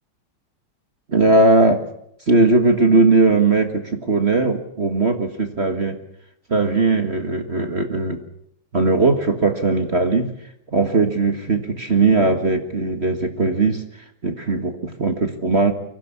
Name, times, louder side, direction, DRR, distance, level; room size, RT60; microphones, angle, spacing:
voice 1, 1.1-1.8 2.3-6.0 6.5-8.2 8.7-10.3 10.7-13.8 14.2-15.7, right 3 dB, 35° right, 6 dB, 1.7 m, -18 dB
24.0 x 16.5 x 8.5 m, 0.75 s
omnidirectional pair, 2.3 m